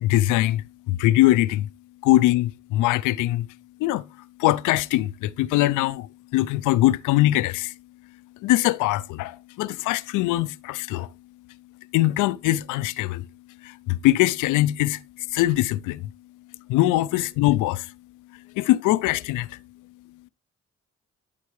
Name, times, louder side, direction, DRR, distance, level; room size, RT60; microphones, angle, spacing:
voice 1, 0.0-1.7 2.0-3.5 3.8-4.0 4.4-7.7 8.4-11.1 11.9-13.3 13.6-15.0 15.3-16.1 16.7-17.9 18.6-19.6, left 16 dB, 80° left, 0.5 m, -22 dB
12.0 x 4.6 x 3.1 m
supercardioid pair, 50°, 31 cm